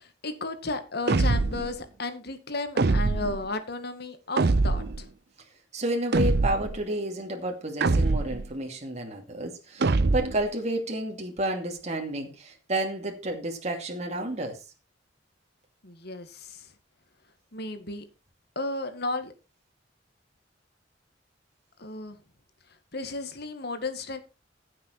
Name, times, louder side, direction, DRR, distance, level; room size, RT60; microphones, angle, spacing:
voice 1, 0.0-5.1 15.8-16.7 17.5-18.0 18.6-19.3 21.8-22.2 22.9-24.2, left 2 dB, 60° left, 9 dB, 2.2 m, -34 dB
sound 1, 1.1-1.7 2.8-3.5 4.4-5.0 6.1-6.8 7.8-8.5 9.8-10.5, right 3 dB, 60° right, 0.7 m, -23 dB
voice 2, 5.7-14.6, right 1 dB, 40° right, 2 dB, 2.5 m, -31 dB
15.5 x 7.6 x 4.5 m, 0.30 s
head